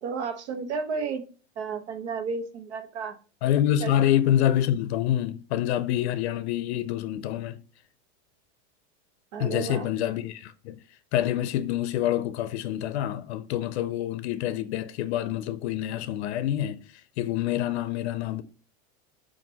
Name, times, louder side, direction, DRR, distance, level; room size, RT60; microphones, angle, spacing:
voice 1, 0.0-1.2 1.6-3.2 3.8-3.9 9.3-9.9, right 5 dB, 75° right, 1.1 m, -32 dB
voice 2, 3.4-7.6 9.4-18.4, left 11 dB, 75° left, 0.5 m, -27 dB
7.2 x 2.5 x 2.8 m
supercardioid pair, 155°, 34 cm